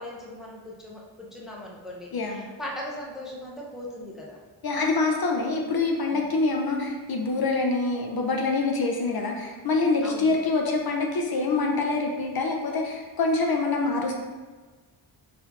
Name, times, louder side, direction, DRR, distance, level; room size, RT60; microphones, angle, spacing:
voice 1, 0.0-2.1 2.3-4.4 6.1-6.2 10.0-10.3, left 1 dB, ahead, -3 dB, 0.6 m, -39 dB
voice 2, 2.1-2.5 4.6-14.1, left 3 dB, 50° left, 1 dB, 0.5 m, -25 dB
4.1 x 2.7 x 4.0 m, 1.4 s
wide cardioid pair, 135°, 48 cm